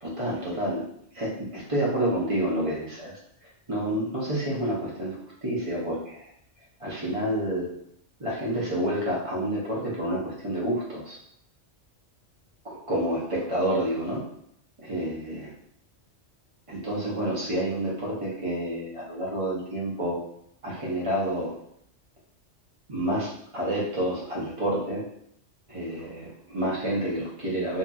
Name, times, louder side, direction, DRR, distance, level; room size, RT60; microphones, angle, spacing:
voice 1, 0.0-0.8 1.1-3.1 3.7-5.2 5.4-6.3 6.8-7.7 8.2-11.2 12.6-14.2 14.8-15.5 16.7-20.2 20.6-21.6 22.9-25.0 25.7-27.8, right 1 dB, 35° right, -5 dB, 0.7 m, -29 dB
2.8 x 2.5 x 2.3 m, 0.69 s
omnidirectional pair, 1.3 m